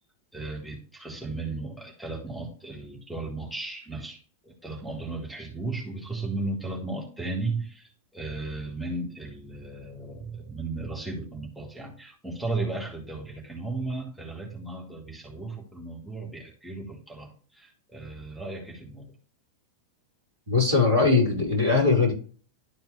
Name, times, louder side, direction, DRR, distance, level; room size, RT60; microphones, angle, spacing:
voice 1, 0.3-19.1, right 3 dB, ahead, -1 dB, 2.2 m, -35 dB
voice 2, 20.5-22.1, left 4 dB, 65° right, -2 dB, 4.6 m, -21 dB
12.0 x 4.3 x 3.4 m, 0.40 s
figure-of-eight pair, 90°, 0 cm